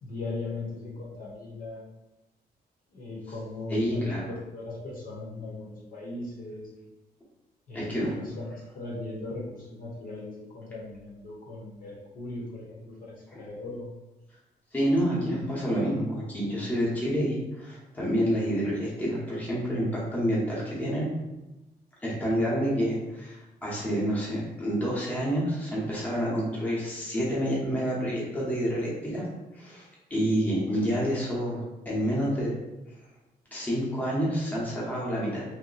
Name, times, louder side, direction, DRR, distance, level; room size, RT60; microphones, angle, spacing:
voice 1, 0.0-1.8 2.9-6.7 7.7-13.9, left 2 dB, 55° left, -4 dB, 0.9 m, -38 dB
voice 2, 3.7-4.2 7.7-8.2 13.3-13.5 14.7-21.1 22.0-29.3 29.5-32.5 33.5-35.4, equal, 10° left, -6 dB, 0.9 m, -28 dB
2.8 x 2.1 x 3.9 m, 1.0 s
cardioid pair, 155°, 17 cm